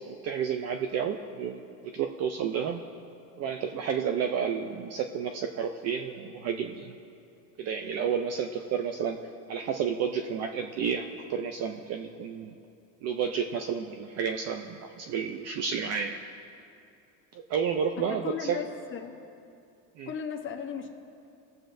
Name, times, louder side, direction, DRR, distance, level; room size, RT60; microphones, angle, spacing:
voice 1, 0.1-2.8 3.4-6.9 7.6-9.2 9.5-12.5 13.0-16.2 17.3-18.6 20.0-20.1, right 7 dB, 35° right, 6 dB, 0.4 m, -31 dB
voice 2, 17.9-19.2 20.1-20.9, left 7 dB, 25° left, 3 dB, 0.9 m, -36 dB
20.5 x 7.6 x 2.6 m, 2.6 s
supercardioid pair, 130°, 48 cm